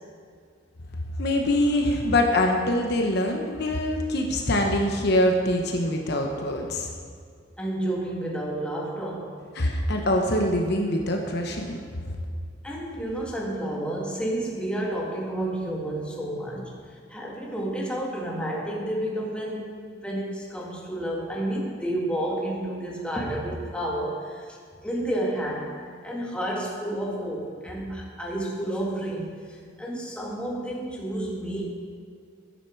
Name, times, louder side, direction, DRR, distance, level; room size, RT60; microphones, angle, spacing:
voice 1, 1.2-6.9 9.5-11.8, left 1 dB, 55° left, 2 dB, 1.0 m, -24 dB
voice 2, 7.6-9.5 12.6-16.8 17.1-24.6 24.8-25.7 26.0-31.6, right 1 dB, 5° left, -3 dB, 1.9 m, -30 dB
12.5 x 10.0 x 4.7 m, 2.2 s
head